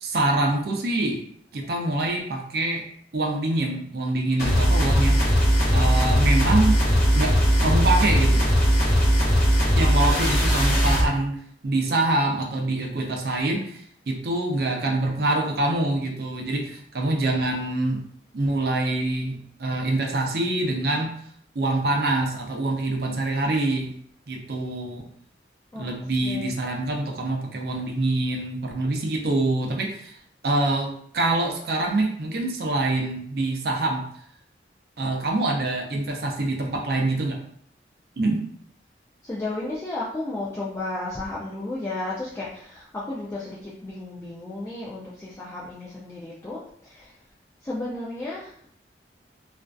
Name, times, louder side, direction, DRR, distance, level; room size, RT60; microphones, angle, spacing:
voice 1, 0.0-1.2 1.5-2.8 3.1-6.8 7.1-8.5 9.8-11.4 11.6-18.0 18.3-21.1 21.5-23.9 24.3-25.1 25.7-30.2 30.4-34.1 35.0-37.4 38.2-38.4, right 2 dB, 55° right, 1 dB, 0.5 m, -25 dB
sound 1, 4.4-11.1, equal, 50° left, 0.8 m, -19 dB
voice 2, 26.2-26.5 39.2-47.1 47.6-48.5, left 2 dB, 15° left, -7 dB, 0.3 m, -33 dB
2.5 x 2.2 x 2.3 m, 0.63 s
head